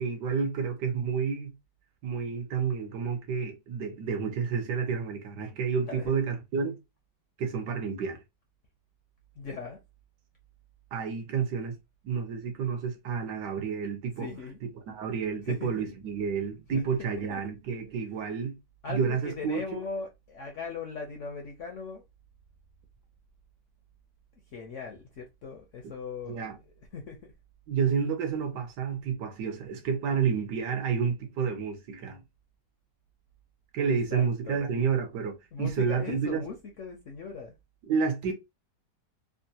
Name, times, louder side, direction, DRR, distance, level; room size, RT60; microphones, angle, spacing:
voice 1, 0.0-1.5 2.0-6.8 7.4-8.2 10.9-11.8 12.0-14.3 14.6-18.6 18.9-19.6 26.3-26.6 27.7-32.2 33.7-36.5 37.9-38.3, right 6 dB, 75° right, 1.4 m, -30 dB
voice 2, 9.4-9.8 14.2-14.6 15.5-15.7 16.7-16.8 17.2-17.4 18.8-22.0 24.5-26.5 26.9-27.2 33.9-34.7 35.5-37.5, left 5 dB, 65° left, 0.8 m, -39 dB
3.6 x 2.2 x 2.7 m
omnidirectional pair, 1.9 m